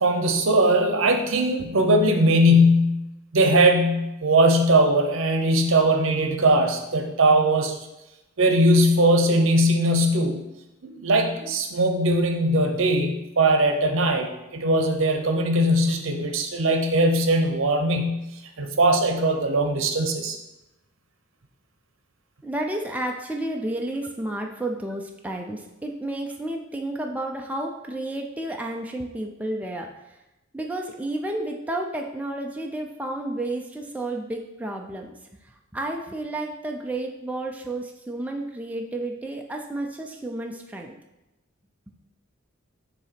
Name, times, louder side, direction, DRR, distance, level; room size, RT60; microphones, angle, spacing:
voice 1, 0.0-3.1 3.3-7.7 8.4-10.4 10.8-18.2 18.6-20.4, right 1 dB, 70° right, 4 dB, 0.8 m, -20 dB
voice 2, 22.4-29.9 30.5-35.1 35.7-40.9, right 1 dB, 5° right, 1 dB, 0.5 m, -31 dB
7.0 x 2.9 x 5.8 m, 0.96 s
head